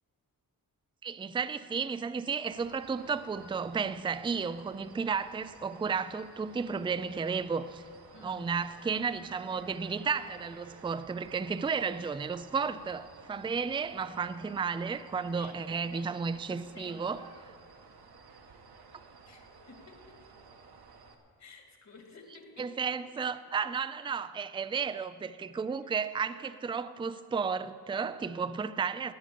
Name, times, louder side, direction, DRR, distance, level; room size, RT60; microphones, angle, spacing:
voice 1, 1.0-7.8 8.2-17.2 22.6-29.1, right 5 dB, 15° right, 0.4 m, -33 dB
sound 1, 2.5-21.1, right 4 dB, 75° right, 1.4 m, -55 dB
voice 2, 8.1-8.5 15.3-17.2 19.2-20.3 21.4-22.8 25.8-25.9, left 3 dB, 45° left, 2.1 m, -53 dB
17.5 x 9.1 x 6.8 m
wide cardioid pair, 135°, 38 cm